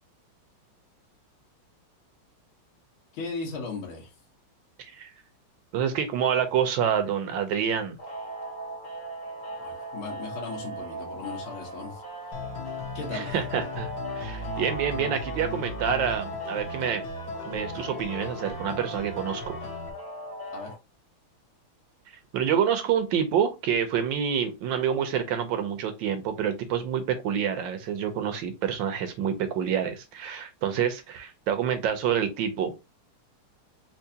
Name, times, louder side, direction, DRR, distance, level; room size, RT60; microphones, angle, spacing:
voice 1, 3.1-4.1 9.6-12.0 12.9-13.4 20.5-20.7, left 4 dB, 70° left, 2.0 m, -37 dB
voice 2, 4.8-5.1 5.7-8.0 13.1-17.0 17.4-19.6 22.3-32.7, right 8 dB, 70° right, 1.2 m, -27 dB
sound 1, 8.0-20.7, right 1 dB, 40° left, 2.0 m, -38 dB
sound 2, 12.3-19.9, left 4 dB, 55° left, 1.1 m, -37 dB
4.5 x 2.6 x 2.7 m
omnidirectional pair, 2.4 m